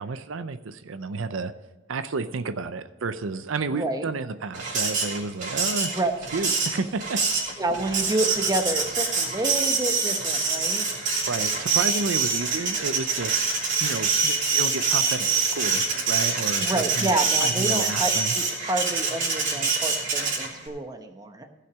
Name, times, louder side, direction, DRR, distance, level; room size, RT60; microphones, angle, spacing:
voice 1, 0.0-1.5 1.9-5.9 6.3-7.2 11.3-13.4 13.8-17.1 17.4-18.3, right 4 dB, 80° right, 11 dB, 0.6 m, -31 dB
voice 2, 3.7-4.1 5.9-6.1 7.6-10.9 16.6-21.6, right 2 dB, 20° right, 6 dB, 0.9 m, -29 dB
Printer, 4.5-20.7, right 4 dB, 40° right, 3.1 m, -25 dB
15.5 x 5.8 x 6.1 m, 1.2 s
head